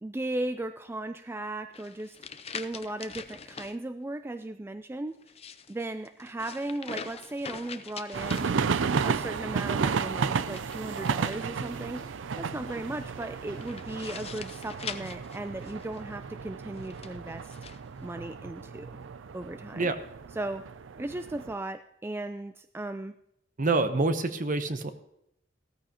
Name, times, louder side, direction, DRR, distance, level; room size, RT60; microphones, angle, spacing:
voice 1, 0.0-5.2 5.7-8.6 9.0-12.0 12.4-17.6 18.0-19.0 19.3-19.9 20.4-20.7 21.0-23.2, right 2 dB, 10° right, 10 dB, 0.3 m, -36 dB
sound 1, 1.7-3.8 5.2-9.1 10.4-11.8 13.6-16.0 16.8-17.8, left 6 dB, 35° left, 0.6 m, -43 dB
sound 2, 6.8-13.6, left 1 dB, 5° left, 2.0 m, -54 dB
sound 3, 8.1-21.5, right 5 dB, 75° right, 0.5 m, -33 dB
voice 2, 23.6-24.9, right 3 dB, 45° right, 9 dB, 0.9 m, -26 dB
15.5 x 13.5 x 3.0 m, 0.78 s
head